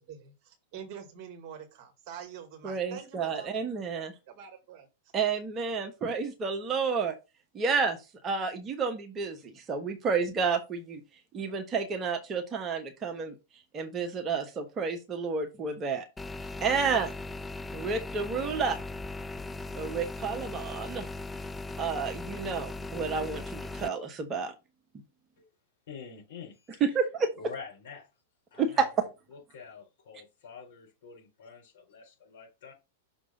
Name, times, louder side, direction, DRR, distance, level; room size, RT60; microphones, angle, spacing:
voice 1, 0.1-3.6 3.9-4.9, right 8 dB, 40° right, 1.8 m, -45 dB
voice 2, 2.6-4.1 5.1-7.1 7.5-8.0 8.2-11.0 11.3-13.4 13.7-16.0 16.6-17.1 17.7-18.8 19.7-21.0 21.8-24.5 26.8-27.3 28.6-28.9, right 5 dB, 25° right, 1.1 m, -30 dB
sound 1, 16.2-23.9, left 2 dB, 10° left, 0.3 m, -38 dB
voice 3, 25.9-26.8 27.4-28.1 28.5-32.7, left 5 dB, 55° left, 4.5 m, -47 dB
6.2 x 3.3 x 5.7 m
figure-of-eight pair, 95°, 0 cm